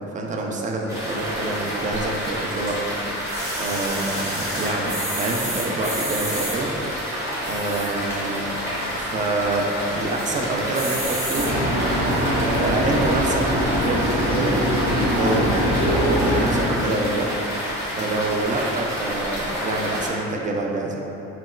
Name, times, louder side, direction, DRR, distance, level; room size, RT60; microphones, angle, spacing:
voice 1, 0.1-2.8 3.1-3.3 3.6-7.1 7.5-8.6 8.9-11.6 12.6-17.3 17.9-21.1, right 2 dB, 25° right, 0 dB, 0.3 m, -27 dB
sound 1, 0.9-20.1, equal, 10° right, 0.9 m, -29 dB
sound 2, 3.3-6.6 7.3-8.0 8.5-8.6 8.8-8.9 9.2-9.7 10.2-10.4 10.7-11.5 12.2-12.3, right 1 dB, 65° right, 1.3 m, -31 dB
sound 3, 11.3-16.6, equal, 85° right, 0.7 m, -22 dB
4.1 x 2.2 x 2.3 m, 3.0 s
cardioid pair, 90°, 30 cm